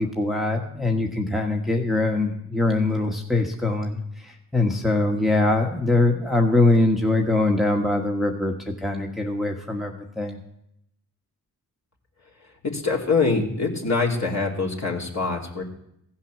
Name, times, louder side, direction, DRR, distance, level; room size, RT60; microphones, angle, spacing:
voice 1, 0.0-10.4, left 2 dB, ahead, 1 dB, 1.3 m, -23 dB
voice 2, 12.4-15.6, left 4 dB, 40° left, -1 dB, 2.5 m, -24 dB
15.0 x 5.7 x 6.1 m, 0.80 s
supercardioid pair, 40°, 40 cm